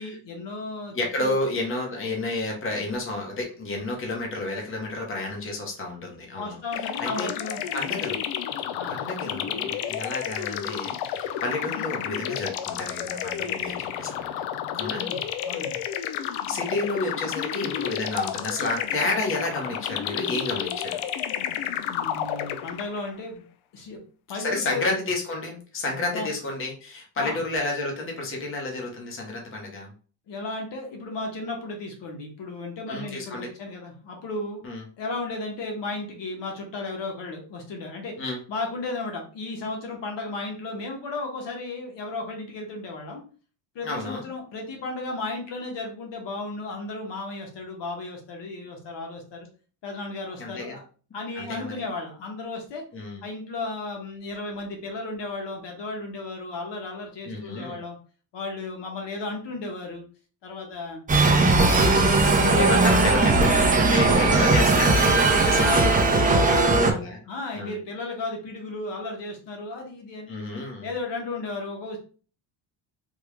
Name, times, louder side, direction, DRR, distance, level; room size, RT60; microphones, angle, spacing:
voice 1, 0.0-0.9 1.2-1.4 6.4-7.6 7.9-8.0 8.8-8.9 14.9-15.8 21.9-23.4 23.7-24.0 24.3-24.9 26.0-26.3 27.2-27.4 30.3-34.6 35.0-38.2 38.5-43.2 43.7-49.5 49.8-50.8 51.1-52.8 53.2-58.0 58.3-60.0 60.4-61.0 61.4-62.0 62.3-63.1 63.9-64.6 65.5-67.0 67.3-70.3 70.8-72.0, left 2 dB, 60° left, 2 dB, 1.1 m, -34 dB
voice 2, 0.9-7.3 7.7-8.2 8.9-14.3 14.8-15.1 16.0-21.0 24.3-29.9 32.9-33.5 34.6-34.8 38.2-38.4 43.8-44.2 50.4-50.8 51.3-51.7 52.9-53.2 57.2-57.8 62.5-67.2 67.5-67.7 70.3-70.9, left 2 dB, 25° left, 0 dB, 0.9 m, -30 dB
sound 1, 6.7-23.1, left 10 dB, 75° left, 0.5 m, -31 dB
sound 2, 61.1-66.9, right 3 dB, 15° right, 0.6 m, -19 dB
3.5 x 2.3 x 3.2 m, 0.39 s
cardioid pair, 125°, 48 cm